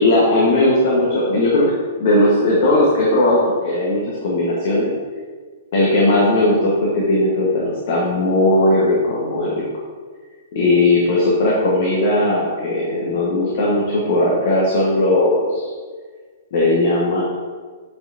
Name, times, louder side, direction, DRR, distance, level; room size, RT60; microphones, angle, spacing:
voice 1, 0.0-1.6 2.0-4.9 5.7-9.6 10.5-15.7 16.5-17.2, left 1 dB, 55° left, -4 dB, 1.5 m, -17 dB
7.5 x 6.0 x 2.8 m, 1.5 s
figure-of-eight pair, 110°, 0 cm